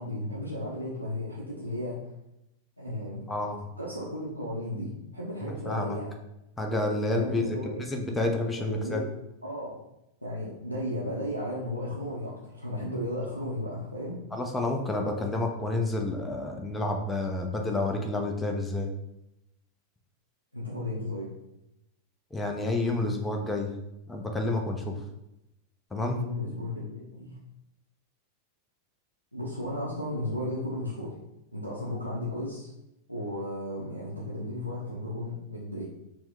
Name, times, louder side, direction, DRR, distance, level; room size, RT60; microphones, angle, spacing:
voice 1, 0.0-2.1 2.8-3.2 3.8-6.1 7.1-7.8 8.6-9.1 9.4-9.8 10.2-14.2 20.5-21.3 25.9-27.4 29.3-31.2 31.5-32.7 33.1-35.8, left 1 dB, 90° left, -6 dB, 0.6 m, -34 dB
voice 2, 3.3-3.6 5.7-6.0 6.6-9.0 14.3-18.9 22.3-23.7 24.1-25.0 25.9-26.2, left 2 dB, 10° left, 3 dB, 0.5 m, -29 dB
4.3 x 2.1 x 3.6 m, 0.88 s
figure-of-eight pair, 90°, 0 cm